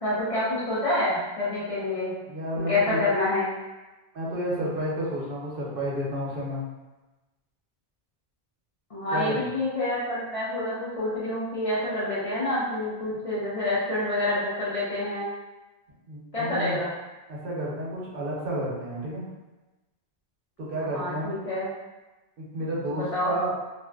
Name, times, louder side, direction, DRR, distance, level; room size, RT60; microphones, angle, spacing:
voice 1, 0.0-2.1 2.7-3.5 8.9-15.3 16.3-16.9 20.9-21.7 22.7-23.3, left 2 dB, 40° left, -8 dB, 0.6 m, -27 dB
voice 2, 2.3-3.1 4.1-6.6 9.1-9.5 16.1-16.8 17.3-19.3 20.6-21.4 22.4-23.5, right 1 dB, 65° right, -6 dB, 0.9 m, -31 dB
2.5 x 2.2 x 2.2 m, 1.1 s
omnidirectional pair, 1.0 m